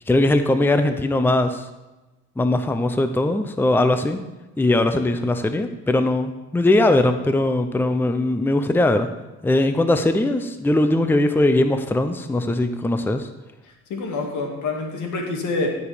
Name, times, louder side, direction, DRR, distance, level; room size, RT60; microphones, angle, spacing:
voice 1, 0.1-1.7 2.4-4.2 4.6-9.1 9.4-13.3, left 2 dB, 5° left, 8 dB, 0.6 m, -20 dB
voice 2, 13.6-15.8, left 3 dB, 75° left, 2 dB, 2.1 m, -27 dB
15.0 x 5.2 x 5.0 m, 1.1 s
cardioid pair, 90°, 30 cm